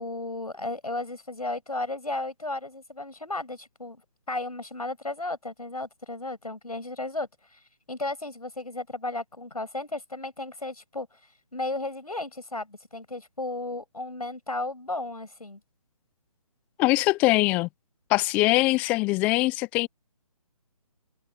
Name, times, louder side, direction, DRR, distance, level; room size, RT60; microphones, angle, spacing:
voice 1, 0.0-4.0 4.3-7.6 7.9-11.1 11.5-15.6, left 2 dB, 85° left, 6.2 m, -34 dB
voice 2, 16.8-17.7 18.1-19.9, left 21 dB, 5° left, 0.4 m, -22 dB
figure-of-eight pair, 145°, 19 cm